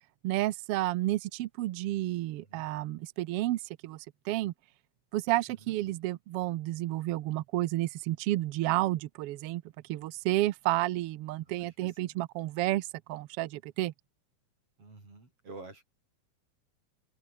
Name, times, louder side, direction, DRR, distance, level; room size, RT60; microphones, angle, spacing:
voice 1, 0.2-4.5 5.1-9.6 9.9-13.9, right 16 dB, 75° right, 1.4 m, -31 dB
voice 2, 11.4-12.2 14.8-15.9, right 3 dB, 50° right, 8.1 m, -50 dB
omnidirectional pair, 3.4 m